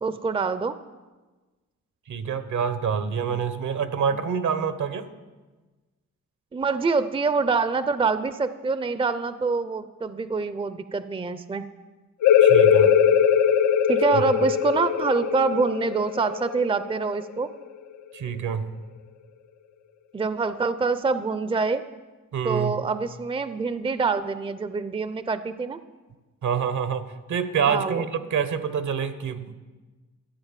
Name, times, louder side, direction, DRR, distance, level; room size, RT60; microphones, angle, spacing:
voice 1, 0.0-0.8 4.1-4.2 6.5-11.6 13.9-17.5 20.1-21.8 22.4-25.8 27.7-28.0, right 4 dB, 15° right, 13 dB, 0.6 m, -25 dB
voice 2, 2.1-5.1 12.4-12.9 14.1-14.2 18.1-18.7 22.3-22.8 26.4-29.6, right 7 dB, 70° right, 12 dB, 1.1 m, -27 dB
sound 1, 12.2-17.6, left 8 dB, 70° left, 0.6 m, -20 dB
13.0 x 8.6 x 7.5 m, 1.3 s
cardioid pair, 80°, 31 cm